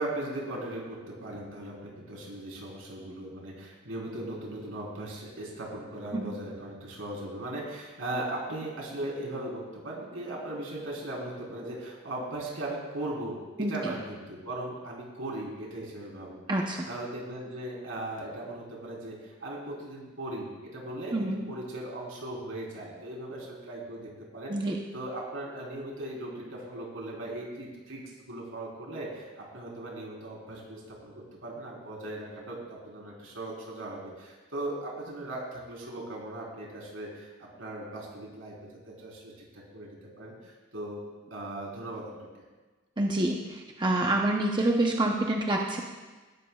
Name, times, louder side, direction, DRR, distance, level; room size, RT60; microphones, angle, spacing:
voice 1, 0.0-16.4 16.9-24.6 24.9-38.5 38.9-41.0 41.3-42.3, right 1 dB, 80° right, -3 dB, 4.1 m, -38 dB
voice 2, 13.6-13.9 16.5-16.9 21.1-21.4 24.5-24.8 43.0-45.8, right 1 dB, 25° right, 0 dB, 0.8 m, -27 dB
18.0 x 12.5 x 2.4 m, 1.3 s
head